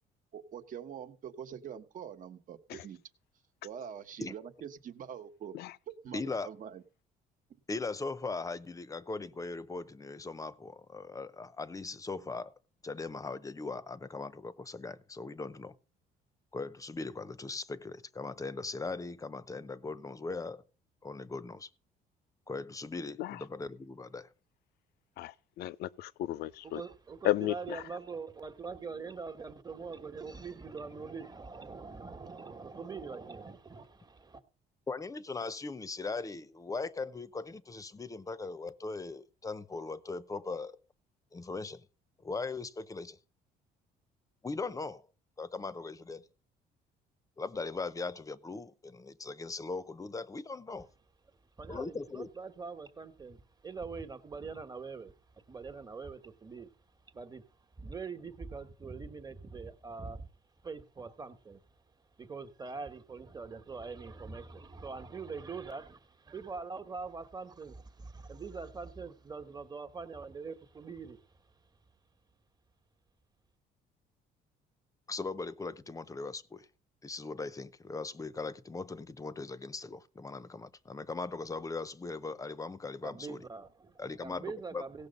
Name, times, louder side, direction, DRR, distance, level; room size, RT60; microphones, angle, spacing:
voice 1, 0.3-3.0 3.6-5.5 5.9-6.8, right 8 dB, 50° right, 1.2 m, -44 dB
voice 2, 6.1-6.5 7.7-12.5 12.8-15.8 16.5-20.6 21.0-21.7 22.5-24.3 34.9-40.8 41.3-41.9 42.2-43.2 44.4-45.1 45.4-46.3 47.4-50.9 51.7-52.3 75.1-76.7 77.0-83.4 84.0-84.8, left 3 dB, 20° left, 0.7 m, -39 dB
voice 3, 25.2-26.8 27.2-27.8, left 16 dB, 70° left, 0.6 m, -33 dB
voice 4, 26.6-34.4 51.6-55.1 55.5-56.8 57.1-57.5 57.8-60.3 60.6-61.6 62.2-71.4 83.0-85.1, right 4 dB, 25° right, 1.3 m, -43 dB
17.0 x 6.7 x 5.3 m
cardioid pair, 110°, 17 cm